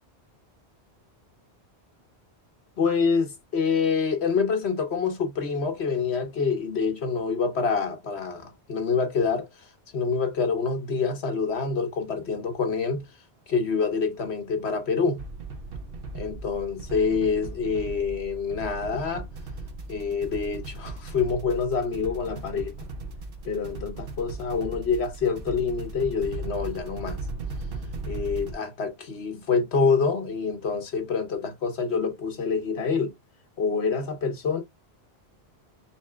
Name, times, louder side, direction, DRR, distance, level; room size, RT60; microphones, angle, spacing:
voice 1, 2.8-9.5 9.9-13.1 13.5-15.2 16.1-19.3 19.9-22.7 23.4-27.2 28.1-33.1 33.6-34.6, left 5 dB, 75° left, 1.5 m, -26 dB
sound 1, 15.2-28.5, right 3 dB, 60° right, 1.0 m, -37 dB
4.3 x 4.2 x 2.2 m
omnidirectional pair, 1.1 m